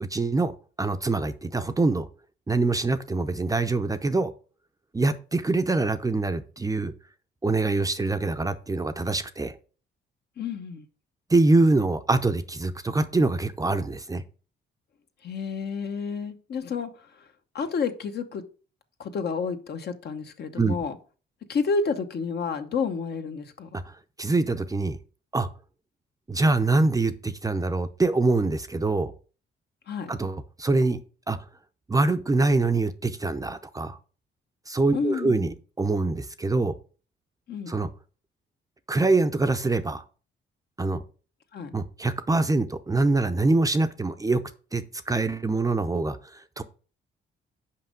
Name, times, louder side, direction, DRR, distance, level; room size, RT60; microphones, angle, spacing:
voice 1, 0.0-2.1 2.5-4.3 4.9-6.9 7.4-9.5 11.3-14.2 20.6-20.8 23.7-25.0 25.3-25.5 26.3-29.1 30.1-31.0 31.3-31.4 31.9-34.0 34.7-36.8 37.7-37.9 38.9-40.0 40.8-41.0 41.7-44.4 44.7-46.6, right 3 dB, 15° right, 0.6 m, -24 dB
voice 2, 10.4-10.8 15.2-16.9 17.5-18.4 19.0-21.0 21.5-23.7 29.9-30.1 34.9-35.5 37.5-37.8 41.5-41.7, left 5 dB, 55° left, 1.0 m, -30 dB
5.8 x 5.2 x 5.1 m
cardioid pair, 90°, 20 cm